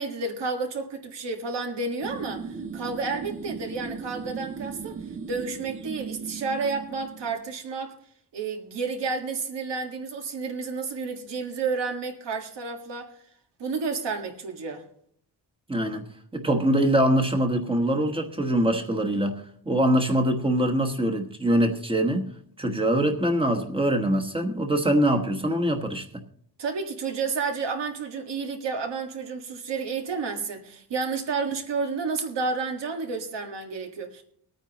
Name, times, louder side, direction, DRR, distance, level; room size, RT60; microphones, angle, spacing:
voice 1, 0.0-5.0 5.3-7.9 8.3-13.1 13.6-14.8 26.6-34.2, right 4 dB, 75° right, 1.8 m, -31 dB
sound 1, 2.0-7.5, right 5 dB, 30° right, 0.7 m, -37 dB
voice 2, 15.7-16.0 16.3-22.3 22.6-26.0, right 1 dB, 10° right, 1.3 m, -23 dB
23.5 x 9.1 x 3.0 m
wide cardioid pair, 165°, 42 cm